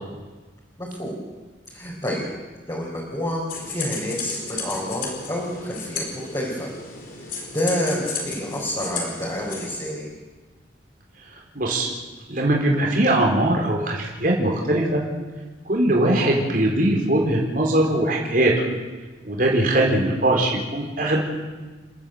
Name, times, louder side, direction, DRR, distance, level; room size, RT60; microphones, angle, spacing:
voice 1, 0.8-1.2 1.7-2.2 2.7-6.7 7.3-10.1, equal, 20° left, -5 dB, 4.7 m, -28 dB
sound 1, 3.5-9.8, left 4 dB, 50° left, 4.4 m, -34 dB
voice 2, 11.5-11.9 12.3-15.0 15.7-18.5 19.2-21.2, right 1 dB, 50° right, -1 dB, 4.4 m, -21 dB
30.0 x 13.0 x 8.0 m, 1.3 s
head